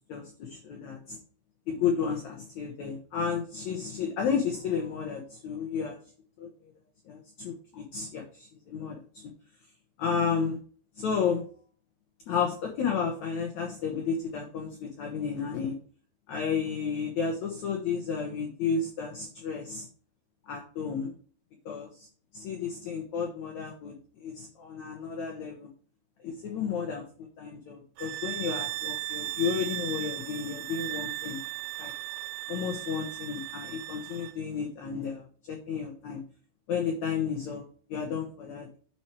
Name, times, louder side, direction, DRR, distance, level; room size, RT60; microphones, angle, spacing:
voice 1, 0.1-1.2 1.7-6.0 6.4-6.7 7.0-9.3 10.0-10.6 11.0-11.4 12.3-15.8 16.3-19.9 20.4-21.1 21.6-22.1 22.3-25.7 26.2-31.4 31.8-31.9 32.5-36.2 36.7-38.8, left 6 dB, 75° left, 1 dB, 1.7 m, -32 dB
sound 1, 28.0-34.4, right 16 dB, 85° right, 2.5 m, -36 dB
9.5 x 4.5 x 4.5 m, 0.43 s
omnidirectional pair, 4.9 m